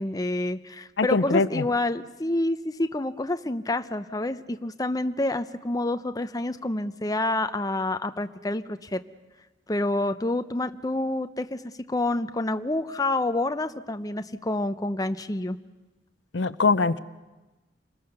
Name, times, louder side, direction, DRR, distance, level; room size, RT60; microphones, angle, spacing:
voice 1, 0.0-9.0 9.7-15.6, left 2 dB, 20° left, 10 dB, 0.7 m, -28 dB
voice 2, 1.0-1.6 16.3-17.0, left 3 dB, 75° left, 15 dB, 0.7 m, -22 dB
29.5 x 21.0 x 6.8 m, 1.1 s
head